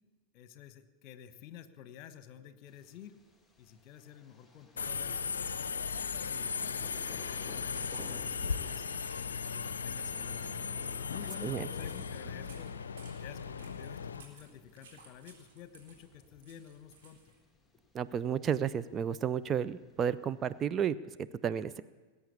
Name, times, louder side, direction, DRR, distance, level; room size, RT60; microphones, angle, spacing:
voice 1, 0.3-3.1 3.6-8.9 9.5-12.7 13.2-17.2, left 10 dB, 40° left, 11 dB, 1.1 m, -51 dB
Thunder, 2.7-20.7, left 2 dB, 5° left, 1.5 m, -57 dB
Subway metro underground, 4.8-14.2, left 6 dB, 70° left, 0.6 m, -37 dB
sound 1, 7.4-17.4, right 4 dB, 55° right, 3.9 m, -59 dB
voice 2, 17.9-21.2 21.4-21.8, right 8 dB, 25° right, 13 dB, 0.4 m, -32 dB
20.0 x 8.4 x 8.4 m, 1.3 s
figure-of-eight pair, 90°, 0 cm